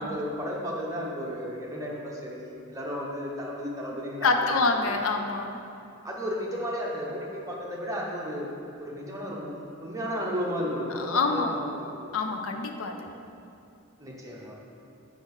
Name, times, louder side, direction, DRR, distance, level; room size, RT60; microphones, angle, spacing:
voice 1, 0.0-5.0 6.0-8.5 8.8-12.1 14.0-14.6, equal, 15° right, -3 dB, 1.0 m, -34 dB
voice 2, 4.2-5.6 10.9-11.6 12.1-13.1, left 3 dB, 70° left, 5 dB, 0.6 m, -26 dB
5.2 x 5.0 x 6.4 m, 2.6 s
head